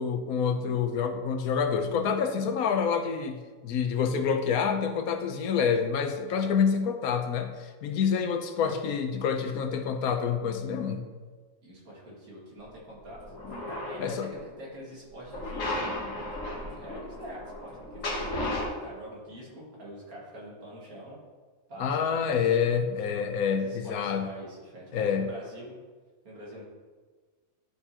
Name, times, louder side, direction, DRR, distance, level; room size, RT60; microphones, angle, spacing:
voice 1, 0.0-11.0 14.0-14.3 21.8-24.3 24.9-25.3, left 6 dB, 80° left, 7 dB, 1.2 m, -27 dB
voice 2, 6.3-6.7 8.0-8.2 11.6-13.2 13.5-15.8 16.5-21.2 21.7-22.5 23.5-25.8 26.2-26.6, equal, 90° right, -5 dB, 2.4 m, -45 dB
sound 1, 13.0-14.4 15.3-18.7, left 1 dB, 65° left, 1.5 m, -35 dB
11.0 x 4.6 x 2.8 m, 1.5 s
omnidirectional pair, 1.5 m